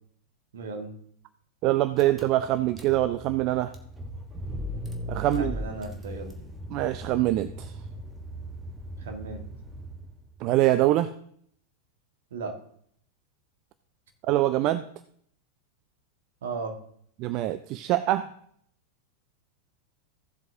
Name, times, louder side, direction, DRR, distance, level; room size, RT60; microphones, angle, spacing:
voice 1, 0.5-1.0 5.2-6.4 9.0-9.4 12.3-12.6 16.4-16.8, right 3 dB, 60° right, 4 dB, 1.6 m, -36 dB
voice 2, 1.6-3.7 5.1-5.5 6.7-7.7 10.4-11.1 14.3-14.8 17.2-18.3, right 15 dB, 40° right, 12 dB, 0.4 m, -24 dB
Car / Engine, 1.7-1.8 2.0-10.3, equal, 15° right, 1.3 m, -38 dB
15.0 x 7.6 x 2.8 m, 0.65 s
figure-of-eight pair, 90°, 0 cm